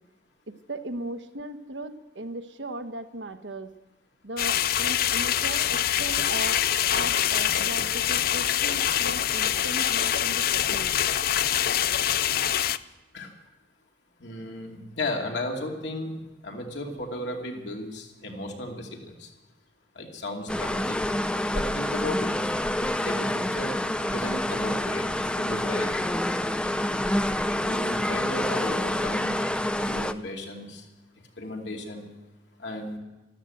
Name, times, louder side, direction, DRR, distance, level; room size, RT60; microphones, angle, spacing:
voice 1, 0.5-3.7 4.2-6.6 6.9-11.0, right 1 dB, 75° right, 8 dB, 1.2 m, -37 dB
sound 1, 4.4-12.8, left 10 dB, 55° left, 0.5 m, -25 dB
voice 2, 14.2-16.1 16.4-19.3 19.9-21.0 21.5-22.3 22.8-25.0 25.3-26.0 27.6-29.4 29.7-30.8 31.4-32.1 32.6-33.0, left 1 dB, 70° left, 1 dB, 2.6 m, -35 dB
sound 2, 20.5-30.1, left 1 dB, 5° left, 0.5 m, -27 dB
13.5 x 13.5 x 7.9 m, 1.1 s
head